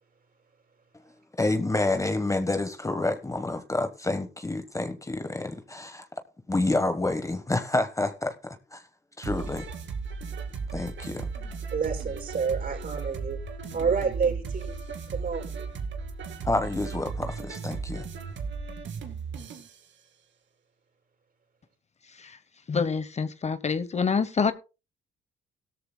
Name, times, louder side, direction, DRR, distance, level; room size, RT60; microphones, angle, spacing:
voice 1, 1.4-6.1 6.5-8.8 9.2-9.7 10.7-11.3 16.4-18.1, left 2 dB, 15° left, 1.2 m, -28 dB
sound 1, 9.2-19.8, right 5 dB, 70° right, 2.4 m, -36 dB
voice 2, 11.7-13.4 13.7-14.8 15.1-15.5, right 5 dB, 50° right, 6.6 m, -28 dB
voice 3, 22.7-24.5, left 5 dB, 35° left, 0.9 m, -27 dB
17.0 x 13.5 x 2.2 m
cardioid pair, 90°, 20 cm